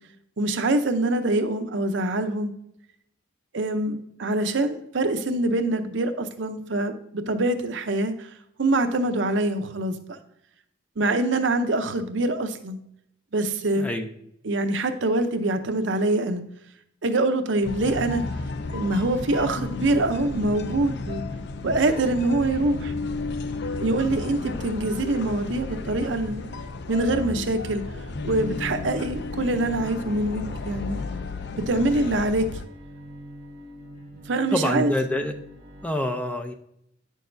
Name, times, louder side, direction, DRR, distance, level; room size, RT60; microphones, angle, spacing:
voice 1, 0.4-2.5 3.5-8.3 8.6-10.2 11.0-12.8 13.3-13.9 14.4-16.4 17.0-18.2 18.7-21.2 21.6-22.9 23.8-26.4 26.9-27.8 28.2-31.0 31.6-32.5 34.3-34.9, right 2 dB, 65° right, 7 dB, 0.7 m, -24 dB
voice 2, 13.8-14.1 34.5-35.3 35.8-36.5, left 1 dB, 5° left, 6 dB, 0.5 m, -26 dB
sound 1, 17.6-32.7, left 3 dB, 60° left, 0.5 m, -33 dB
Bowed string instrument, 28.4-35.9, equal, 35° right, 1.5 m, -44 dB
9.4 x 6.5 x 2.6 m, 0.76 s
head